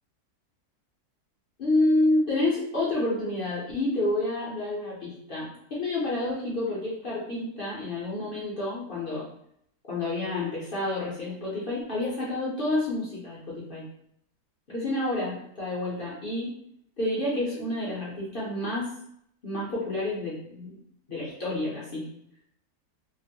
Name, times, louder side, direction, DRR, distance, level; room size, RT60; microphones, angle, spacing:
voice 1, 1.6-9.2 9.9-13.9 14.7-16.5 17.0-18.9 19.4-20.8 21.1-22.1, left 2 dB, 50° left, -7 dB, 0.7 m, -29 dB
2.9 x 2.1 x 2.7 m, 0.71 s
omnidirectional pair, 1.6 m